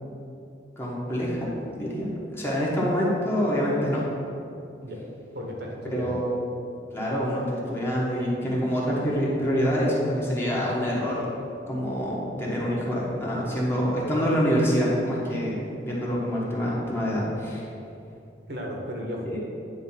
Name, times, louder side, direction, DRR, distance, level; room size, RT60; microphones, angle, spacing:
voice 1, 0.8-1.5 1.7-4.0 5.9-6.3 6.9-11.2 11.7-15.6 15.8-17.7 19.2-19.4, equal, 15° left, -5 dB, 1.2 m, -26 dB
voice 2, 5.3-6.2 18.5-19.4, equal, 60° right, -1 dB, 1.1 m, -34 dB
9.3 x 3.4 x 5.7 m, 2.8 s
head